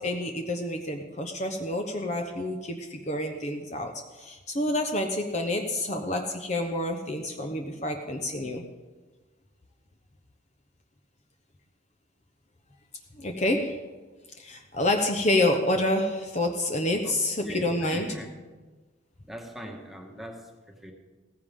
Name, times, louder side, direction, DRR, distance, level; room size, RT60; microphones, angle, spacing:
voice 1, 0.0-8.6 13.2-13.8 14.4-18.1, left 1 dB, 35° left, 4 dB, 0.9 m, -28 dB
voice 2, 17.4-18.4 19.3-20.9, equal, ahead, 1 dB, 1.5 m, -41 dB
16.5 x 15.0 x 3.7 m, 1.3 s
head